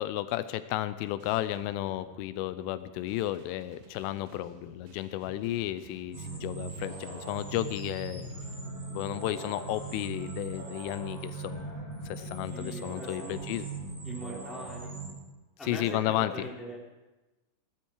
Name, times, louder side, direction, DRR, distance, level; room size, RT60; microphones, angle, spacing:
voice 1, 0.0-8.3 8.9-11.8 12.1-13.7 15.6-16.3, left 14 dB, 85° left, 13 dB, 3.2 m, -33 dB
sound 1, 1.2-8.5, right 4 dB, 80° right, 1.7 m, -56 dB
voice 2, 5.2-5.6 12.5-13.4 14.0-14.9 15.6-16.8, equal, ahead, -5 dB, 2.9 m, -42 dB
sound 2, 6.1-15.1, right 3 dB, 45° right, 0.6 m, -40 dB
19.0 x 12.0 x 4.7 m, 1.1 s
omnidirectional pair, 5.7 m